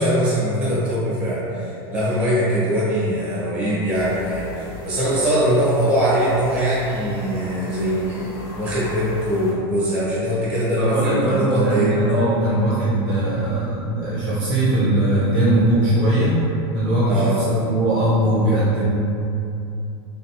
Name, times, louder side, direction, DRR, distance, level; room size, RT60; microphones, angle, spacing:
voice 1, 0.0-11.9 17.0-17.3, equal, 10° right, -9 dB, 1.0 m, -22 dB
sound 1, 3.9-9.5, left 2 dB, 65° left, 0.6 m, -36 dB
voice 2, 10.8-16.4 16.7-18.8, right 1 dB, 35° right, -8 dB, 0.7 m, -20 dB
3.2 x 3.1 x 2.8 m, 2.7 s
supercardioid pair, 175°, 13 cm